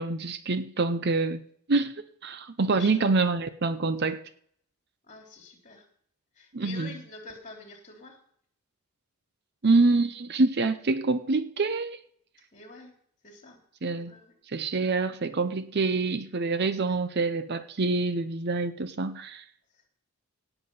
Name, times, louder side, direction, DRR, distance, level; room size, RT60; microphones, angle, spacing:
voice 1, 0.0-1.4 1.7-1.9 2.2-4.2 6.5-6.9 9.6-12.0 13.8-14.1 14.5-19.4, right 3 dB, 45° right, 12 dB, 0.7 m, -26 dB
voice 2, 2.7-3.0 5.0-5.8 6.3-8.2 12.5-12.9 13.2-13.6 14.1-14.3 16.8-17.0 19.7-19.9, left 3 dB, 35° left, 1 dB, 3.2 m, -46 dB
17.5 x 7.0 x 5.5 m, 0.63 s
head